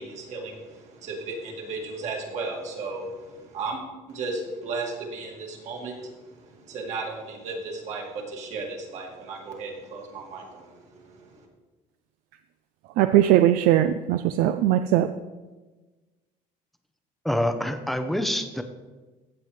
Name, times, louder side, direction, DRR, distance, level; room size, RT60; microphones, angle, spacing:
voice 1, 0.0-3.8 4.1-11.5, right 3 dB, 50° right, 0 dB, 2.1 m, -35 dB
voice 2, 13.0-15.1, right 12 dB, 75° right, 10 dB, 0.4 m, -20 dB
voice 3, 17.2-18.6, left 1 dB, ahead, 8 dB, 0.6 m, -26 dB
16.0 x 7.4 x 3.2 m, 1.2 s
cardioid pair, 160°, 15 cm